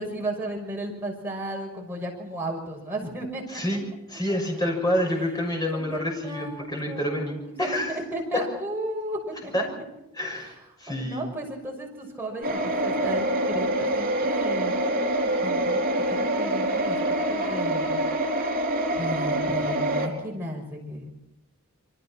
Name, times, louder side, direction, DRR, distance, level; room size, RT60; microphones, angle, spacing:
voice 1, 0.0-3.6 5.7-9.5 11.0-14.7 15.4-17.0 17.3-18.1 18.9-21.1, right 1 dB, 10° right, -2 dB, 6.2 m, -34 dB
voice 2, 3.5-3.8 4.1-8.0 8.3-8.4 9.5-9.6 10.2-10.5 10.8-11.3, left 1 dB, 15° left, 0 dB, 6.2 m, -27 dB
sound 1, 12.4-20.1, right 1 dB, 40° right, 4.0 m, -25 dB
27.5 x 23.5 x 4.5 m, 0.87 s
head